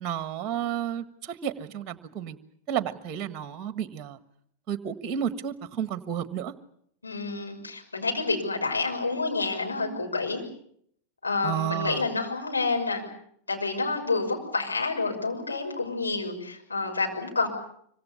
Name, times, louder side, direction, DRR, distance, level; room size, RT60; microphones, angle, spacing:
voice 1, 0.0-2.4 2.7-4.2 4.7-6.5 11.4-12.0, right 9 dB, 30° right, 12 dB, 1.5 m, -31 dB
voice 2, 7.0-10.4 11.2-13.0 13.5-17.5, left 3 dB, 80° left, 1 dB, 6.2 m, -28 dB
25.5 x 25.0 x 7.0 m, 0.69 s
figure-of-eight pair, 90°, 0 cm